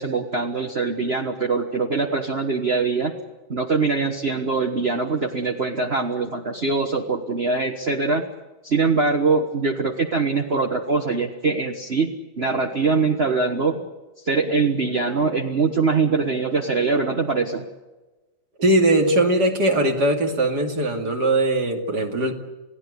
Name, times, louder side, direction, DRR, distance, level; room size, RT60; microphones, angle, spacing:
voice 1, 0.0-3.1 3.5-8.2 8.6-12.1 12.4-13.8 14.2-17.7, right 4 dB, 35° right, 2 dB, 1.5 m, -23 dB
voice 2, 18.6-22.3, right 1 dB, 60° right, 3 dB, 3.1 m, -20 dB
29.0 x 17.5 x 8.4 m, 1.2 s
omnidirectional pair, 2.1 m